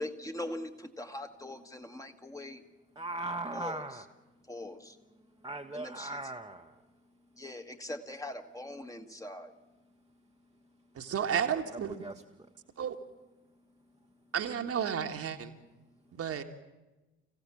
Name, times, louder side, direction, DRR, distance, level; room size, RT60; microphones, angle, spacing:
voice 1, 0.0-2.6 3.5-3.8 4.5-5.0 5.7-6.3 7.4-9.5, left 1 dB, 10° left, 1.5 m, -41 dB
voice 2, 2.9-4.1 5.2-6.9 11.7-12.5, right 2 dB, 10° right, 1.1 m, -39 dB
voice 3, 10.9-11.9 12.8-13.0 14.3-15.5 16.2-16.4, right 8 dB, 45° right, 1.6 m, -32 dB
25.5 x 16.0 x 7.5 m
figure-of-eight pair, 45°, 34 cm